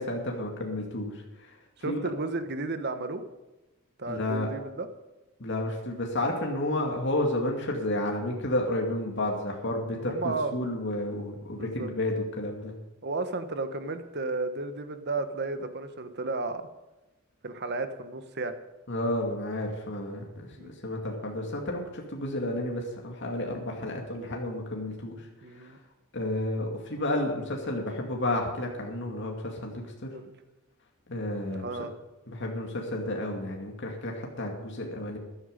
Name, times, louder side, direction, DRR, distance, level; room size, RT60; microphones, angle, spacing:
voice 1, 0.0-1.6 1.8-2.0 4.1-4.5 5.4-12.7 18.9-25.3 25.5-25.7 26.1-30.1 31.1-31.7 32.3-35.2, left 1 dB, 60° left, 0 dB, 2.4 m, -31 dB
voice 2, 1.8-3.2 4.0-4.9 10.1-10.5 11.5-11.9 13.0-16.7 17.4-18.6 20.6-20.7 25.4-25.8 30.1-30.3 31.5-31.9, right 3 dB, 50° right, 9 dB, 1.3 m, -33 dB
14.0 x 11.0 x 5.3 m, 1.0 s
head